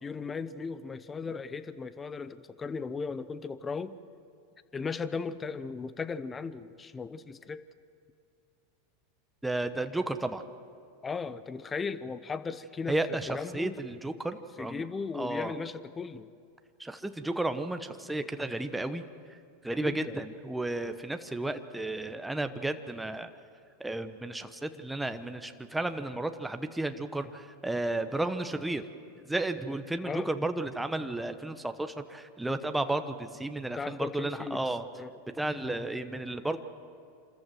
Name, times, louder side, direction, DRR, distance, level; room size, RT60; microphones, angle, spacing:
voice 1, 0.0-3.9 4.7-7.6 11.0-13.0 13.3-13.7 14.6-16.3 19.8-20.2 30.0-30.3 33.7-34.6 35.0-35.1, left 5 dB, 20° left, 15 dB, 0.8 m, -36 dB
voice 2, 9.4-10.4 12.9-14.8 15.1-15.5 16.8-19.0 19.3-19.4 19.6-23.3 23.8-28.8 29.3-34.9 35.3-36.6, right 2 dB, 5° right, 8 dB, 1.0 m, -33 dB
26.5 x 14.0 x 7.7 m, 2.4 s
hypercardioid pair, 105°, 0 cm